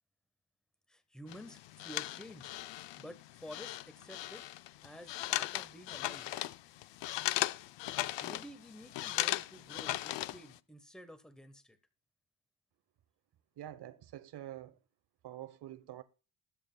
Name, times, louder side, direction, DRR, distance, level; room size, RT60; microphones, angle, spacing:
voice 1, 0.9-2.5 3.0-4.4 4.8-6.3 8.2-11.8, equal, ahead, 1.1 m, -51 dB
sound 1, 1.3-10.6, left 15 dB, 70° left, 0.6 m, -38 dB
voice 2, 13.6-14.8 15.2-16.0, right 12 dB, 60° right, 1.0 m, -46 dB
20.5 x 7.5 x 2.2 m
cardioid pair, 105°, 45 cm